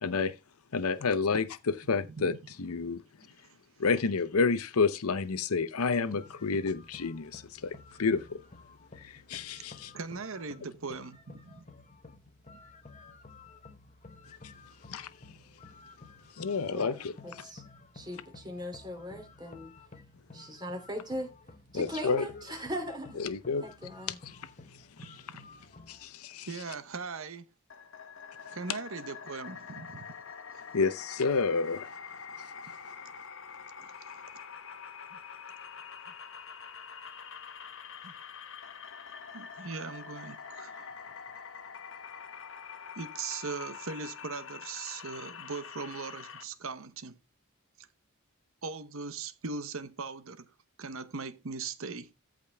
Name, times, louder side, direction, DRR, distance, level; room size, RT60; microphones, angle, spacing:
voice 1, 0.0-0.3 0.7-2.3 2.6-3.0 3.8-8.4 9.0-9.9 14.9-15.1 16.4-17.1 21.7-22.2 23.2-23.6 25.0-25.1 25.9-26.5 30.7-31.9, left 4 dB, 80° left, 0.7 m, -29 dB
voice 2, 2.1-2.4 9.6-9.7 9.9-11.6 25.0-25.4 26.5-27.5 28.5-30.1 33.8-33.9 35.1-35.2 38.0-38.1 39.3-41.0 43.0-47.2 47.8-47.9 48.6-50.5 50.8-52.1, right 4 dB, 65° right, 1.0 m, -40 dB
sound 1, 6.1-26.0, left 3 dB, 35° left, 1.0 m, -53 dB
voice 3, 16.7-17.6 17.9-19.9 20.3-21.3 21.7-23.2 23.6-24.2, equal, 20° right, 3.0 m, -39 dB
sound 2, 27.7-46.4, left 6 dB, 60° left, 1.2 m, -45 dB
14.0 x 5.2 x 3.5 m
head